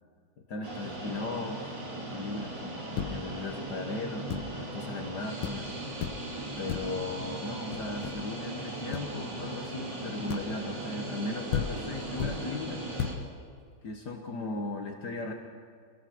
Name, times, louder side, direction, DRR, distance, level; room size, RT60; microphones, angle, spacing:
voice 1, 0.5-5.7 6.6-12.9 13.8-15.3, left 3 dB, 60° left, 3 dB, 2.0 m, -37 dB
sound 1, 0.6-13.1, right 2 dB, 65° right, 4.2 m, -38 dB
sound 2, 2.9-3.4 4.3-4.6 5.1-5.2 5.4-5.7 6.0-6.4 6.7-7.1 7.7-8.3 8.9-9.2 10.3-10.7 11.2-11.3 11.5-12.5 13.0-13.3, left 8 dB, 85° left, 1.7 m, -35 dB
24.5 x 18.0 x 6.1 m, 2.1 s
omnidirectional pair, 2.1 m